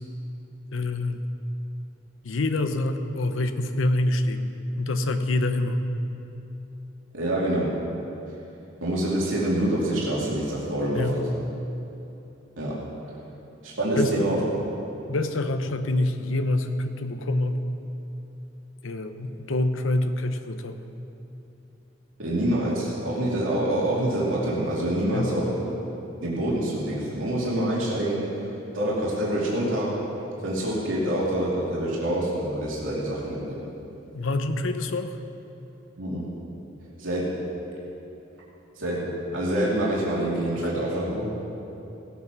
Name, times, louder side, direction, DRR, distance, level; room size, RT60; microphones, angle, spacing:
voice 1, 0.7-1.2 2.2-5.8 10.9-11.2 14.0-14.3 15.1-17.6 18.8-20.8 25.1-25.3 34.1-35.2 40.6-40.7, left 2 dB, 85° left, 8 dB, 0.8 m, -26 dB
voice 2, 7.1-7.7 8.8-11.0 12.6-12.7 13.6-14.4 22.2-25.5 26.2-28.2 28.7-29.9 30.4-33.6 36.0-36.2 37.0-37.4 38.8-41.3, right 1 dB, 90° right, -6 dB, 2.6 m, -26 dB
17.0 x 8.3 x 6.1 m, 2.9 s
head